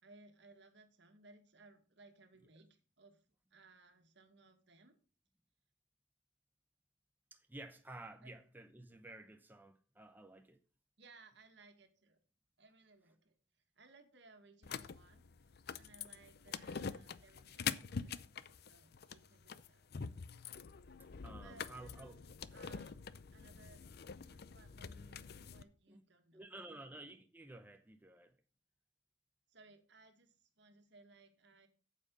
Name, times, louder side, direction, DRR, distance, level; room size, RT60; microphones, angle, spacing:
voice 1, 0.0-3.2 3.5-5.0 8.2-8.4 11.0-12.2 12.6-13.3 13.8-18.3 18.6-19.9 21.4-23.0 23.3-23.8 24.3-26.8 29.5-31.7, right 3 dB, 70° right, 1.9 m, -63 dB
voice 2, 7.3-10.6 16.5-16.8 21.2-22.2 25.9-26.0 26.3-28.4, right 2 dB, 10° right, 0.8 m, -53 dB
sound 1, 14.6-25.6, left 6 dB, 60° left, 0.6 m, -45 dB
8.9 x 7.5 x 5.3 m
head